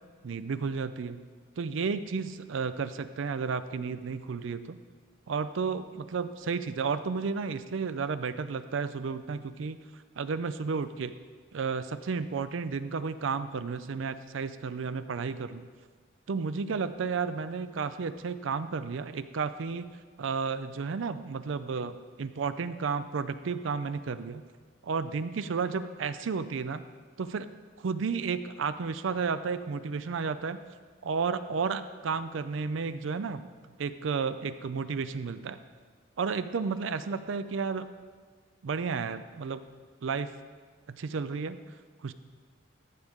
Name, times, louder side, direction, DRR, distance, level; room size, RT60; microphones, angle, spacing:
voice 1, 0.2-1.2 1.6-4.8 5.3-9.8 10.2-11.1 11.5-15.7 16.3-19.9 20.2-24.4 24.8-26.8 27.2-27.5 27.8-30.6 31.0-33.4 33.8-35.6 36.2-37.9 38.6-39.6 40.0-40.3 41.0-41.6 42.0-42.1, right 5 dB, 70° right, 12 dB, 0.4 m, -32 dB
13.5 x 6.6 x 3.6 m, 1.5 s
head